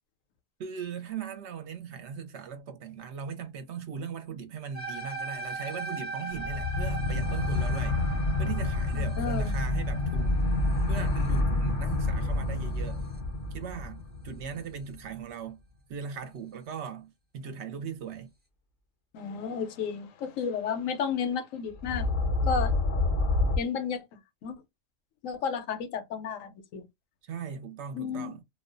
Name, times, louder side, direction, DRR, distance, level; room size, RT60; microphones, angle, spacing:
voice 1, 0.6-8.0 8.4-10.3 10.9-13.0 13.5-15.6 15.9-18.3 27.2-28.4, right 6 dB, 70° right, 0.8 m, -39 dB
sound 1, 4.7-13.2, right 3 dB, 15° right, 0.3 m, -40 dB
sound 2, 6.3-14.8 21.8-23.6, left 2 dB, 55° left, 0.6 m, -28 dB
voice 2, 8.9-9.5 19.1-22.1 22.5-22.8 23.6-24.0 24.4-24.6 25.2-26.8 27.9-28.3, left 6 dB, 85° left, 1.0 m, -32 dB
2.3 x 2.1 x 2.4 m
omnidirectional pair, 1.3 m